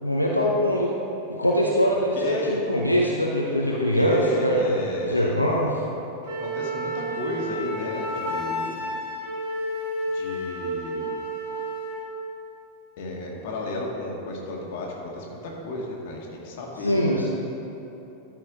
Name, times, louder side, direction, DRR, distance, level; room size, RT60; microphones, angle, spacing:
voice 1, 0.0-0.9 1.4-4.6 5.1-5.7 16.8-17.3, equal, 85° left, -3 dB, 0.7 m, -22 dB
voice 2, 2.1-2.7 3.7-5.4 6.4-8.7 10.1-11.1 13.0-17.0, left 1 dB, 50° left, -2 dB, 1.7 m, -32 dB
Wind instrument woodwind instrument, 6.2-12.1, equal, 45° right, 1.8 m, -31 dB
12.5 x 4.6 x 5.0 m, 3.0 s
figure-of-eight pair, 90°, 0 cm